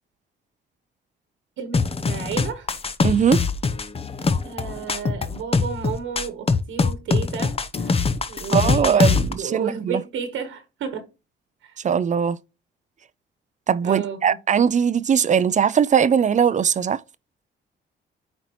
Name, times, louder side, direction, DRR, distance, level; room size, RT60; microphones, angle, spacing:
voice 1, 1.6-2.7 4.4-8.0 8.3-9.0 9.4-11.1 11.6-11.8 13.8-14.4, right 7 dB, 80° right, 1.3 m, -32 dB
sound 1, 1.7-9.3, left 4 dB, 30° left, 0.7 m, -22 dB
voice 2, 3.0-3.4 8.5-10.0 11.8-12.4 13.7-17.0, right 7 dB, 40° right, 0.5 m, -20 dB
9.1 x 4.3 x 3.0 m
cardioid pair, 90°, 20 cm